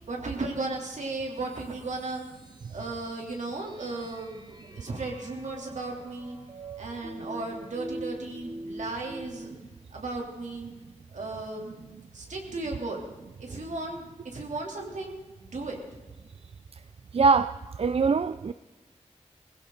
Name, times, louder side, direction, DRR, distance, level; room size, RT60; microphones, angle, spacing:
voice 1, 0.1-2.2 2.7-6.4 6.8-9.5 9.9-10.7 11.1-11.8 12.1-13.0 13.4-15.8, right 2 dB, 80° right, 3.3 m, -35 dB
sound 1, 1.4-9.5, right 1 dB, 35° right, 1.8 m, -44 dB
voice 2, 17.1-18.5, right 4 dB, 55° right, 0.4 m, -23 dB
21.0 x 16.0 x 4.0 m
wide cardioid pair, 95°, 12 cm